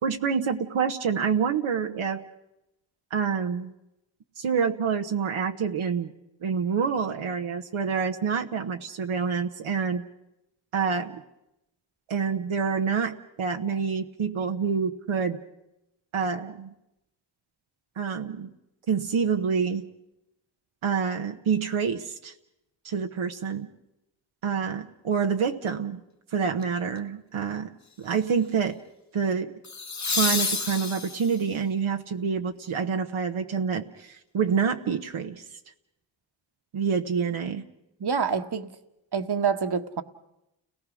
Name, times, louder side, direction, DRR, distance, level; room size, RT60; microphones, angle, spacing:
voice 1, 0.0-2.2 3.1-3.7 4.4-6.1 6.4-10.0 10.7-11.2 12.1-15.4 16.1-16.7 18.0-18.5 18.9-19.9 20.8-22.3 22.8-23.7 24.4-26.0 26.3-27.7 28.0-28.8 29.1-29.5 30.1-35.4 36.7-37.6, right 6 dB, 90° right, 4 dB, 1.1 m, -27 dB
sound 1, 26.6-27.0 29.6-31.5 34.4-34.5, left 4 dB, 35° left, 1.2 m, -29 dB
voice 2, 38.0-38.7 39.1-40.0, right 6 dB, 55° right, 8 dB, 1.4 m, -26 dB
30.0 x 18.5 x 6.3 m, 0.88 s
cardioid pair, 50°, 47 cm